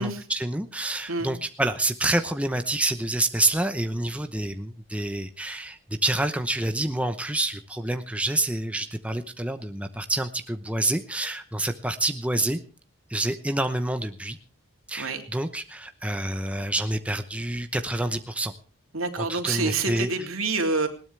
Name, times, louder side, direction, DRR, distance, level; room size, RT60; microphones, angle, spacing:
voice 1, 0.0-12.6 13.1-14.4 14.9-18.5 19.2-20.1, right 1 dB, 5° right, 7 dB, 0.8 m, -28 dB
voice 2, 18.9-20.9, right 3 dB, 85° right, 5 dB, 3.0 m, -27 dB
20.0 x 18.0 x 3.4 m, 0.36 s
head